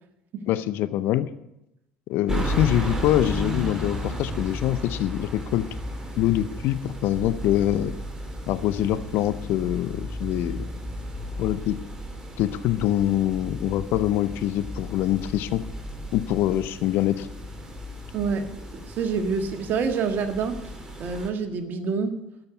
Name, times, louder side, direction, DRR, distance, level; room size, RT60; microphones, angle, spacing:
voice 1, 0.5-1.3 2.1-5.7 6.2-8.0 8.5-10.6 11.4-11.8 12.4-15.6 16.1-17.3, left 13 dB, 60° left, 14 dB, 0.7 m, -24 dB
sound 1, 2.3-21.3, equal, 15° right, 2.7 m, -34 dB
voice 2, 18.1-20.7 21.0-22.2, right 5 dB, 50° right, 7 dB, 1.7 m, -27 dB
13.0 x 6.6 x 9.5 m, 0.86 s
figure-of-eight pair, 60°, 4 cm